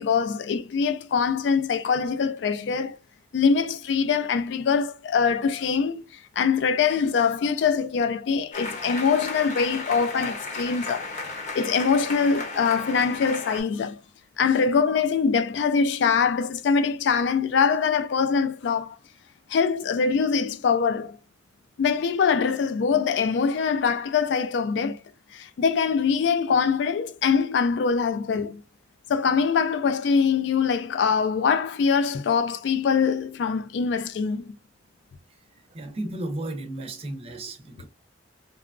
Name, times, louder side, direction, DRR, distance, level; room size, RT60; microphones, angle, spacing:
voice 1, 0.0-3.0 3.3-11.1 11.5-14.0 14.4-19.0 19.5-21.2 21.8-25.0 25.3-28.6 29.1-34.5, left 6 dB, 65° left, 0.3 m, -23 dB
sound 1, 8.5-13.6, left 3 dB, 40° left, 0.7 m, -34 dB
voice 2, 35.7-37.9, right 1 dB, 30° right, 0.5 m, -34 dB
2.9 x 2.3 x 2.4 m
head